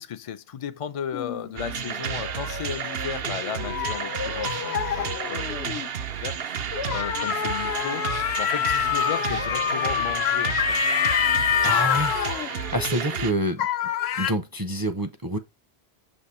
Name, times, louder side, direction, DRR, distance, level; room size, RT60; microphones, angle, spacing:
voice 1, 0.0-8.0 8.4-10.9, left 8 dB, 45° left, 0.5 m, -35 dB
sound 1, 1.1-5.9 6.7-13.3 13.6-14.3, left 8 dB, 75° left, 0.9 m, -27 dB
sound 2, 1.6-13.3, right 8 dB, 70° right, 0.9 m, -32 dB
voice 2, 11.6-12.2 12.4-13.7 14.2-15.4, right 1 dB, 25° right, 0.5 m, -27 dB
6.4 x 3.0 x 5.4 m
omnidirectional pair, 1.1 m